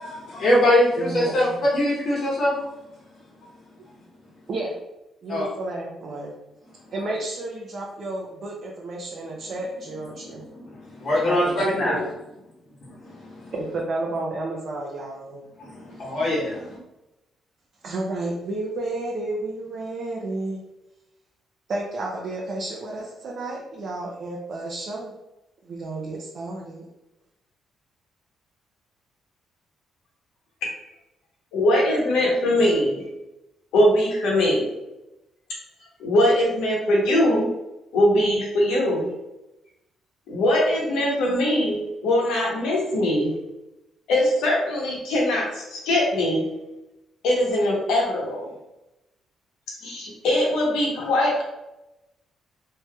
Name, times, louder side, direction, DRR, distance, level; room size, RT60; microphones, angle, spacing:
voice 1, 0.0-2.6 3.0-3.5 5.3-5.5 6.7-6.9 10.0-10.7 11.0-12.1 12.8-13.5 15.6-16.8, left 1 dB, 55° left, -6 dB, 0.9 m, -24 dB
voice 2, 1.0-1.4 4.5-4.7 5.2-6.3 6.9-10.5 11.2-12.0 13.5-15.4 17.8-20.6 21.7-25.1 25.7-26.8, right 2 dB, 55° right, -3 dB, 0.6 m, -31 dB
voice 3, 31.5-33.0 33.7-34.7 36.0-37.5 37.9-39.1 40.3-43.3 44.1-46.4 47.2-48.4 49.8-51.4, left 1 dB, 90° left, -2 dB, 0.9 m, -21 dB
3.2 x 2.7 x 2.3 m, 0.94 s
cardioid pair, 90°, 0 cm